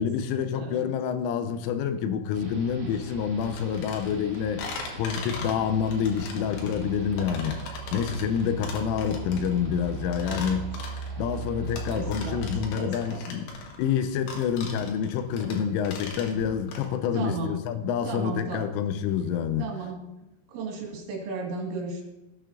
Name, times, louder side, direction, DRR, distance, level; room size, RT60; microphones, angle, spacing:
voice 1, 0.0-10.7 11.2-13.5 13.8-19.7, left 7 dB, 85° left, 3.1 m, -28 dB
voice 2, 0.5-0.9 10.2-10.6 11.9-12.4 12.8-13.2 17.1-17.6 18.1-18.6 19.6-20.0 20.5-22.0, right 3 dB, 75° right, 4.2 m, -34 dB
sound 1, 2.3-12.7, right 5 dB, 55° right, 3.8 m, -39 dB
sound 2, 3.4-16.9, left 4 dB, 70° left, 3.3 m, -39 dB
17.5 x 8.4 x 2.5 m
omnidirectional pair, 5.7 m